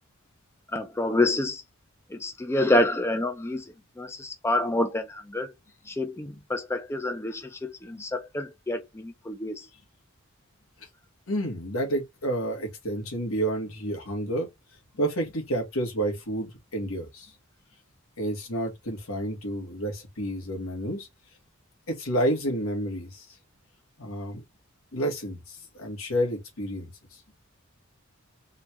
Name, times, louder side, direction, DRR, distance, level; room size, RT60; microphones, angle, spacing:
voice 1, 0.7-1.6 2.1-3.6 4.0-5.5 5.9-9.7, left 1 dB, 10° left, 0.5 m, -27 dB
voice 2, 11.3-14.5 14.9-17.3 18.2-21.1 21.9-23.4 24.0-24.4 24.9-27.2, right 1 dB, 80° left, 1.5 m, -30 dB
3.7 x 2.3 x 2.9 m
head